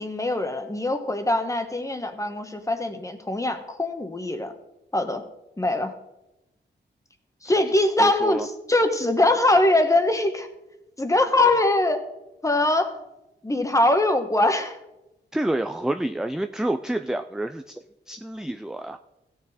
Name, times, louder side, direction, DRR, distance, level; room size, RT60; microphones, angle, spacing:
voice 1, 0.0-4.5 4.9-5.2 5.6-5.9 7.4-10.5 11.0-12.0 12.4-13.0 13.4-14.8, left 2 dB, 15° left, 7 dB, 1.1 m, -22 dB
voice 2, 8.0-8.5 15.3-17.8 18.1-19.0, right 1 dB, 5° right, 8 dB, 0.4 m, -28 dB
16.5 x 6.5 x 4.2 m, 0.93 s
wide cardioid pair, 115°, 19 cm